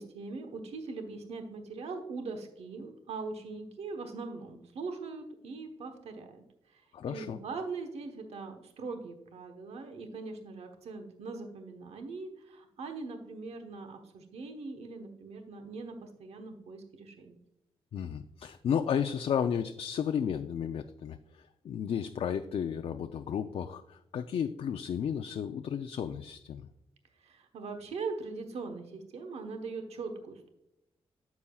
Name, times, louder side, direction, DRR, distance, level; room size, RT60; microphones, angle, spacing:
voice 1, 0.0-6.4 6.7-17.4 27.2-30.5, right 4 dB, 80° right, 5 dB, 1.1 m, -41 dB
voice 2, 6.9-7.4 17.9-26.6, left 8 dB, 65° left, 7 dB, 0.4 m, -33 dB
9.7 x 7.2 x 2.3 m, 0.81 s
cardioid pair, 85°, 11 cm